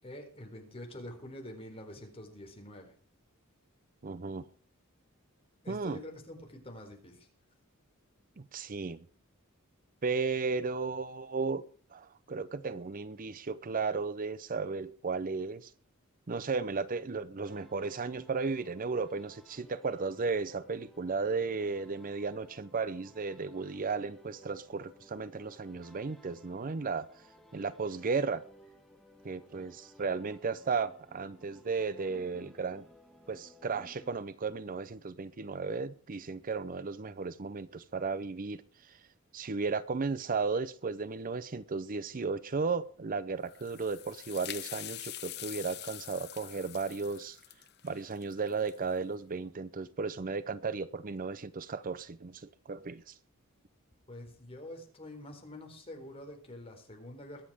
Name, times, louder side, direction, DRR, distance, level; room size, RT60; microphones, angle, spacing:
voice 1, 0.0-2.9 5.6-7.3 54.1-57.4, left 1 dB, 25° left, 3 dB, 4.1 m, -46 dB
voice 2, 4.0-4.4 5.7-6.0 8.4-9.0 10.0-11.6 11.9-15.7 16.3-27.1 27.5-28.4 29.2-32.9 33.3-39.0 39.3-47.4 47.8-53.2, right 4 dB, 40° right, 16 dB, 0.6 m, -35 dB
sound 1, 17.5-34.7, equal, ahead, 1.7 m, -59 dB
sound 2, 43.4-49.0, left 14 dB, 50° left, 0.7 m, -45 dB
22.0 x 7.6 x 4.9 m, 0.42 s
head